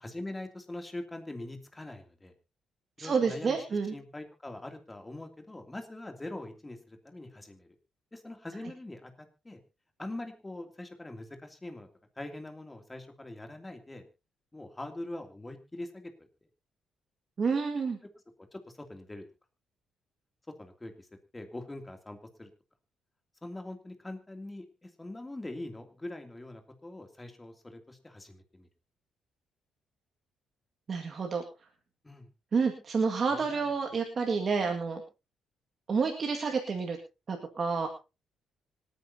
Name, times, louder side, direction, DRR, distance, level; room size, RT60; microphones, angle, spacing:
voice 1, 0.0-2.3 3.0-3.6 3.9-7.7 8.1-9.6 10.0-11.9 12.2-14.1 14.5-16.3 18.5-19.2 20.6-21.1 21.3-22.5 23.4-28.7 32.0-32.3 33.3-33.7, left 1 dB, 15° left, 5 dB, 2.7 m, -43 dB
voice 2, 3.0-3.9 17.4-18.0 30.9-31.4 32.5-35.0 35.9-37.0 37.3-37.9, right 5 dB, 45° right, 3 dB, 1.9 m, -29 dB
25.5 x 9.3 x 2.8 m, 0.29 s
cardioid pair, 90°, 0 cm